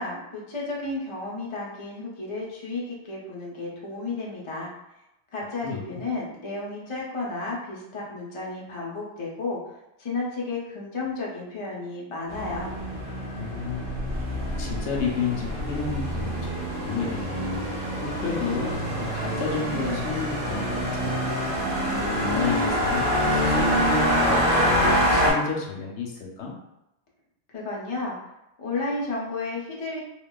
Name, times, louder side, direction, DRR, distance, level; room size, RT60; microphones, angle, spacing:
voice 1, 0.0-4.7 5.3-9.6 10.0-12.7 27.5-28.2 28.6-30.0, left 3 dB, 45° left, -4 dB, 0.4 m, -32 dB
voice 2, 5.6-6.0 13.4-14.3 14.6-16.5 16.8-17.4 17.7-18.7 19.1-21.3 22.0-26.5, left 5 dB, 70° left, -1 dB, 0.8 m, -31 dB
sound 1, 12.3-25.3, equal, 45° right, 1.3 m, -26 dB
2.9 x 2.1 x 2.2 m, 0.90 s
omnidirectional pair, 1.3 m